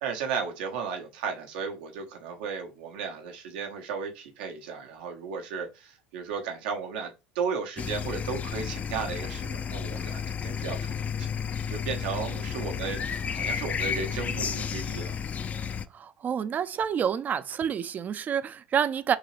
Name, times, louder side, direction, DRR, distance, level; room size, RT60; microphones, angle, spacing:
voice 1, 0.0-11.3 11.7-15.2, right 5 dB, 80° right, 0.9 m, -35 dB
sound 1, 7.8-15.9, left 7 dB, 30° left, 0.4 m, -32 dB
voice 2, 15.9-19.2, right 8 dB, 35° right, 0.4 m, -28 dB
3.8 x 2.8 x 3.1 m
hypercardioid pair, 90°, 5 cm